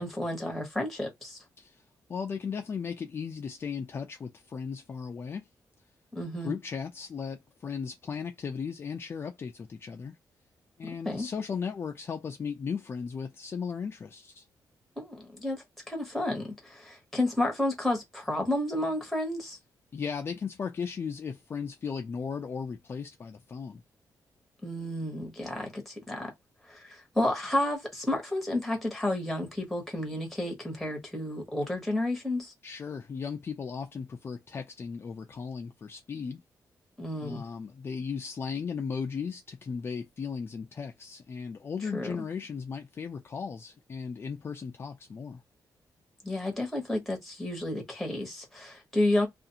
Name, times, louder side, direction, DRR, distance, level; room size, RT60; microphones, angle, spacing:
voice 1, 0.0-1.4 6.1-6.5 10.8-11.3 15.0-19.6 24.6-26.3 26.7-32.5 37.0-37.4 41.9-42.1 46.2-49.3, left 1 dB, ahead, 1.1 m, -31 dB
voice 2, 2.1-5.4 6.4-10.2 10.8-14.5 19.9-23.8 32.6-36.4 37.2-45.4, left 6 dB, 35° left, 0.4 m, -36 dB
2.5 x 2.4 x 2.8 m
wide cardioid pair, 150°, 7 cm